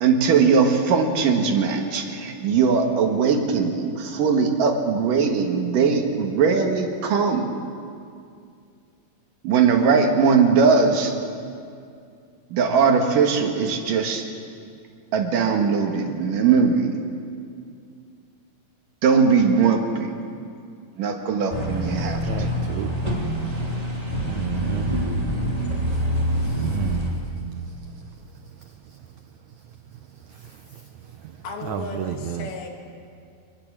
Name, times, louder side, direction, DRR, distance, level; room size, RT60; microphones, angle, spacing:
voice 1, 0.0-7.5 9.4-11.1 12.5-14.2 15.1-16.9 19.0-20.1 21.0-22.2, right 5 dB, 65° right, 4 dB, 3.1 m, -20 dB
sound 1, 21.5-27.1, equal, 10° right, 2.3 m, -26 dB
voice 2, 22.2-22.9 24.2-25.0 26.4-27.2 31.7-32.5, right 10 dB, 80° right, 7 dB, 1.7 m, -31 dB
voice 3, 31.4-32.7, left 4 dB, 80° left, 2 dB, 4.2 m, -35 dB
25.0 x 19.5 x 7.6 m, 2.4 s
omnidirectional pair, 4.3 m